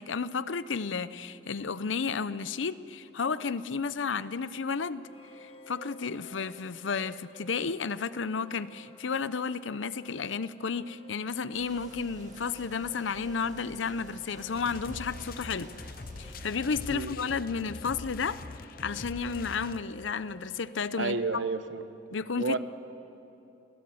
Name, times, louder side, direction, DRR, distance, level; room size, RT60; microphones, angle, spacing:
voice 1, 0.0-5.1 5.4-15.9 16.2-18.4 18.8-21.2 22.1-22.6, left 5 dB, 85° left, 15 dB, 0.7 m, -32 dB
sound 1, 5.1-20.9, right 1 dB, 30° left, 1.6 m, -55 dB
sound 2, 11.5-17.0, right 2 dB, 40° right, 1.9 m, -51 dB
sound 3, 14.5-20.1, left 3 dB, 50° left, 0.7 m, -43 dB
voice 2, 21.0-21.8 22.4-22.6, right 3 dB, 90° right, 11 dB, 1.0 m, -30 dB
29.0 x 17.0 x 7.8 m, 2.9 s
head